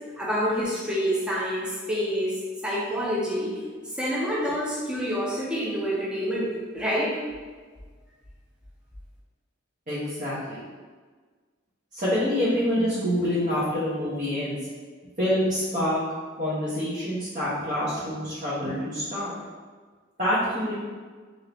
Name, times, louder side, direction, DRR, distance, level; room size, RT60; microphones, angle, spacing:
voice 1, 0.2-3.6 3.9-6.5 6.7-7.1, equal, 5° right, -6 dB, 0.6 m, -27 dB
voice 2, 9.9-10.6 11.9-14.6 15.2-16.0 16.4-19.3 20.2-20.7, left 1 dB, 40° right, -11 dB, 1.0 m, -26 dB
3.6 x 2.7 x 3.4 m, 1.5 s
head